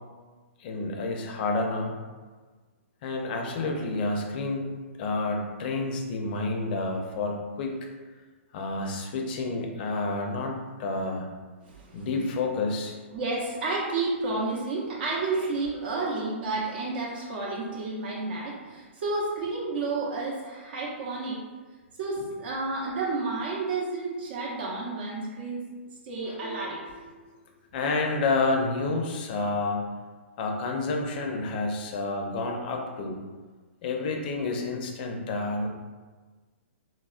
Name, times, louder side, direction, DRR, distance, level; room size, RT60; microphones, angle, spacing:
voice 1, 0.6-1.9 3.0-4.7 5.0-7.7 8.5-11.3 11.9-13.0 15.8-16.2 26.3-26.6 27.7-29.8 30.4-33.2 33.8-35.7, left 3 dB, 45° left, 2 dB, 0.5 m, -29 dB
voice 2, 11.6-12.1 13.1-21.4 22.0-25.6 26.0-26.8, right 3 dB, 55° right, -3 dB, 0.6 m, -31 dB
3.5 x 2.0 x 2.4 m, 1.4 s
hypercardioid pair, 135°, 7 cm